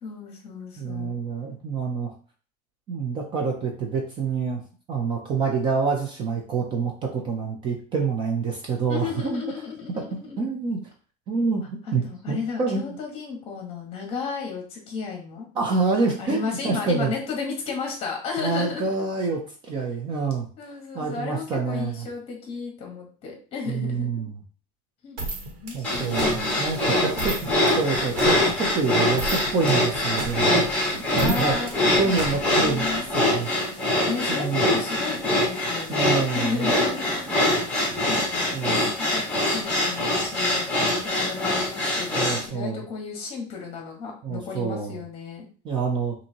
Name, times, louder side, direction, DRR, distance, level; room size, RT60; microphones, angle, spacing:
voice 1, 0.0-1.2 8.9-10.4 12.0-15.5 16.2-19.0 20.6-24.3 25.0-25.2 25.6-27.6 31.2-33.1 34.1-37.3 37.6-45.5, left 5 dB, 30° left, 1 dB, 1.3 m, -34 dB
voice 2, 0.8-2.1 2.9-4.6 4.9-9.4 10.4-10.8 11.3-12.9 15.6-17.1 18.4-20.5 20.9-22.1 23.7-24.3 25.7-27.3 27.8-30.7 31.2-31.6 32.0-33.5 34.3-34.7 35.9-36.7 38.5-38.9 42.2-42.8 44.2-45.0 45.6-46.1, right 4 dB, 25° right, 1 dB, 0.5 m, -27 dB
sound 1, 25.2-33.0, right 2 dB, 80° right, 1.5 m, -35 dB
sound 2, 25.8-42.5, left 1 dB, 5° left, 1.3 m, -24 dB
5.5 x 2.7 x 2.9 m, 0.40 s
cardioid pair, 175°, 20 cm